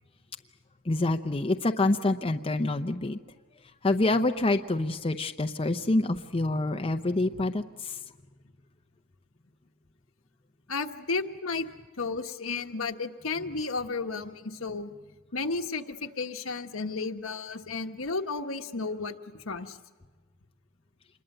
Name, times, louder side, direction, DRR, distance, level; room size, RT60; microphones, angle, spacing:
voice 1, 0.8-3.2 3.8-8.0, left 2 dB, 25° left, 6 dB, 0.7 m, -27 dB
voice 2, 10.7-11.6 12.0-14.9 15.3-19.8, left 4 dB, 75° left, 6 dB, 1.3 m, -33 dB
27.0 x 21.5 x 7.9 m, 1.4 s
head